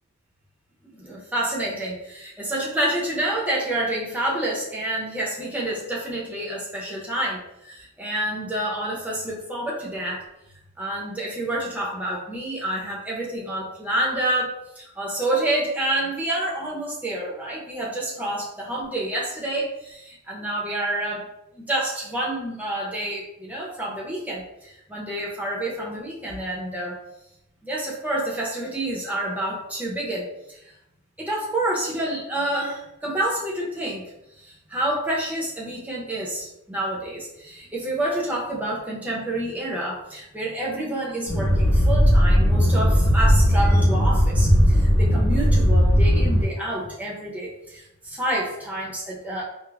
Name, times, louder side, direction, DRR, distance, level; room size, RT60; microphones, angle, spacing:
voice 1, 0.9-10.2 10.8-21.3 21.5-27.0 27.6-30.6 31.2-34.1 34.4-49.4, right 1 dB, 10° right, -5 dB, 0.7 m, -28 dB
sound 1, 41.3-46.4, equal, 90° left, 1.0 m, -17 dB
5.0 x 2.1 x 2.4 m, 0.86 s
head